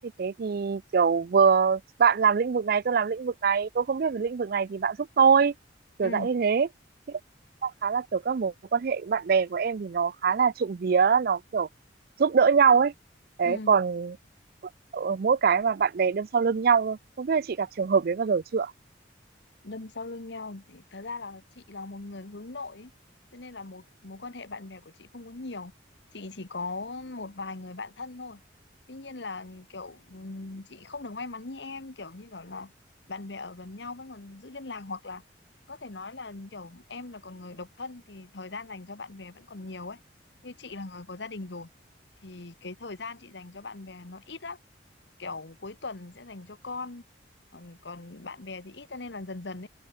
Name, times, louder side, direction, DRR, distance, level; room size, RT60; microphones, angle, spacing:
voice 1, 0.0-5.5 6.0-6.7 7.1-7.2 7.6-11.7 12.2-12.9 13.4-14.1 14.9-18.7, right 6 dB, 55° right, 0.4 m, -24 dB
voice 2, 13.4-13.8 19.6-22.9 23.3-25.7 26.1-28.4 28.9-32.7 33.1-35.2 35.7-40.0 40.4-41.7 42.2-44.6 45.2-47.0 47.5-49.7, left 3 dB, 65° left, 1.4 m, -40 dB
head